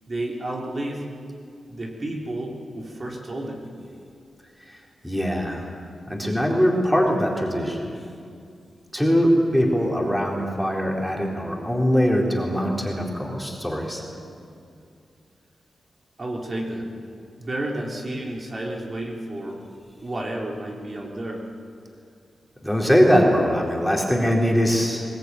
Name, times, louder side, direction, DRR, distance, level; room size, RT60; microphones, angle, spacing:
voice 1, 0.1-1.0 1.7-3.7 16.2-16.9 17.4-19.6 20.0-21.4, right 1 dB, 35° right, -1 dB, 3.5 m, -31 dB
voice 2, 4.7-5.7 6.1-7.9 8.9-14.2 22.6-25.1, equal, ahead, -1 dB, 4.0 m, -22 dB
22.5 x 19.0 x 9.7 m, 2.4 s
wide cardioid pair, 100°, 0 cm